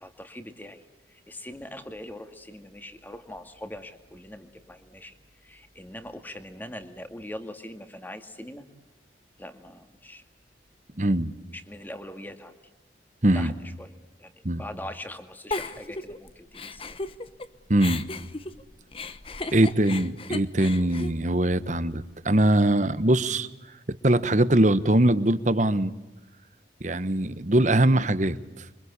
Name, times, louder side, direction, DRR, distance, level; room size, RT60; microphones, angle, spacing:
voice 1, 0.0-8.7 9.4-10.2 11.5-12.6 13.3-13.9 14.2-16.8, left 1 dB, 10° left, 7 dB, 2.0 m, -42 dB
voice 2, 11.0-11.3 13.2-13.5 14.4-14.6 17.7-18.0 19.5-23.5 23.9-25.9 26.8-28.7, right 1 dB, 40° right, 14 dB, 1.2 m, -22 dB
Giggle, 15.5-17.5 17.8-22.0, left 3 dB, 30° left, 1.1 m, -36 dB
28.0 x 24.0 x 8.2 m, 1.1 s
head